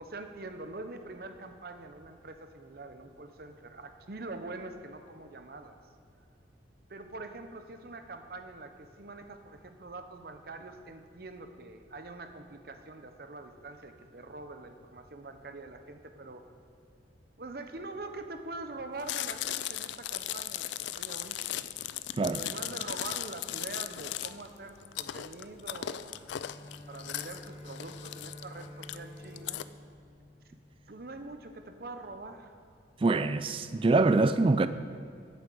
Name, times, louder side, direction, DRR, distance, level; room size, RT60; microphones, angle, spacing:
voice 1, 0.0-5.8 6.9-16.4 17.4-21.7 22.3-26.3 26.9-29.6 30.9-32.5, right 2 dB, 50° right, 0.7 m, -44 dB
Chewing mastication, 19.0-29.6, left 12 dB, 70° left, 0.3 m, -37 dB
Bowed string instrument, 26.2-31.3, left 1 dB, 30° left, 2.3 m, -49 dB
voice 2, 33.0-34.7, right 3 dB, 30° right, 0.3 m, -24 dB
8.5 x 6.8 x 7.7 m
head